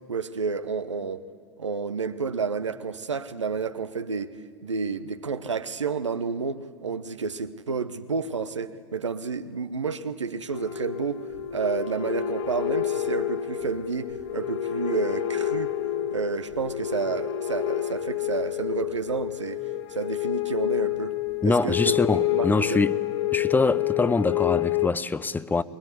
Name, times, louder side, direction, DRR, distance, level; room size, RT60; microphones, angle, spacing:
voice 1, 0.1-1.2 1.6-4.4 4.6-15.7 16.1-19.6 19.9-21.9 22.3-22.8, right 5 dB, 80° right, 0.9 m, -30 dB
sound 1, 10.5-24.9, left 13 dB, 65° left, 1.1 m, -29 dB
voice 2, 21.4-22.9 23.3-25.6, left 3 dB, 10° left, 0.7 m, -24 dB
23.5 x 20.5 x 9.7 m
figure-of-eight pair, 80°, 15 cm